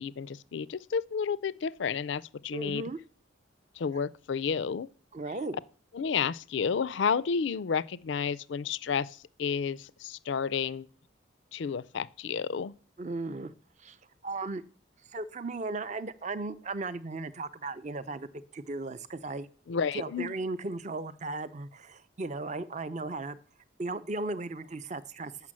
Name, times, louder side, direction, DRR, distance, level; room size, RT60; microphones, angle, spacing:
voice 1, 0.0-2.8 3.8-4.9 5.9-10.9 11.5-12.7 19.7-20.4, left 6 dB, 70° left, 0.4 m, -31 dB
voice 2, 2.5-3.0 5.1-5.6 13.0-13.5 13.8-14.0 14.2-14.6 15.1-19.5 19.9-23.4 23.8-25.3, right 3 dB, 35° right, 0.5 m, -36 dB
7.3 x 6.0 x 7.5 m
head